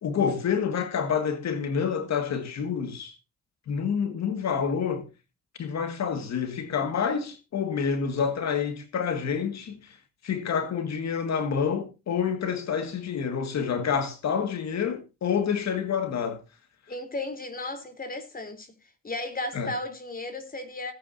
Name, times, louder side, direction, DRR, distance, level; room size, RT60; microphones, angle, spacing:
voice 1, 0.0-3.1 3.7-5.1 5.6-10.0 10.2-16.4 19.5-19.7, left 7 dB, 60° left, 2.0 m, -28 dB
voice 2, 16.9-18.7 19.0-20.9, left 2 dB, 30° left, 3.7 m, -34 dB
18.0 x 9.2 x 2.7 m
cardioid pair, 90°, 30 cm